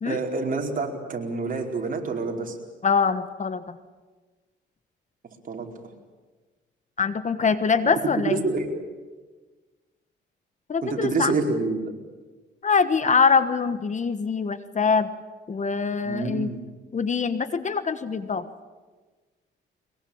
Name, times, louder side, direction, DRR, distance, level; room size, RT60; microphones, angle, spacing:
voice 1, 0.0-2.6 5.5-5.7 8.2-8.7 10.8-11.9 16.0-16.6, right 3 dB, 45° right, 1 dB, 4.7 m, -27 dB
voice 2, 2.8-3.8 7.0-8.4 10.7-11.3 12.6-15.1 15.5-16.5 16.9-18.4, left 5 dB, 35° left, 12 dB, 1.3 m, -23 dB
23.0 x 22.0 x 8.8 m, 1.3 s
cardioid pair, 90°, 20 cm